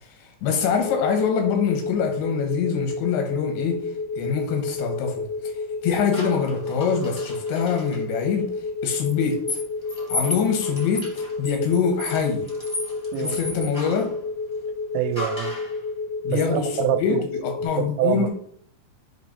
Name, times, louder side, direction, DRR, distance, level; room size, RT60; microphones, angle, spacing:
voice 1, 0.2-3.8 4.2-5.5 5.8-8.5 8.8-9.6 10.1-12.5 13.2-14.1 16.2-18.3, left 6 dB, 80° left, 3.5 m, -24 dB
sound 1, 0.8-17.6, left 3 dB, 50° left, 1.2 m, -31 dB
sound 2, 6.1-8.0 9.0-14.1 15.1-15.8, left 1 dB, 20° left, 0.7 m, -34 dB
voice 2, 14.9-15.5 16.3-17.2 17.8-18.3, right 13 dB, 90° right, 2.8 m, -25 dB
7.6 x 2.9 x 5.4 m
omnidirectional pair, 5.0 m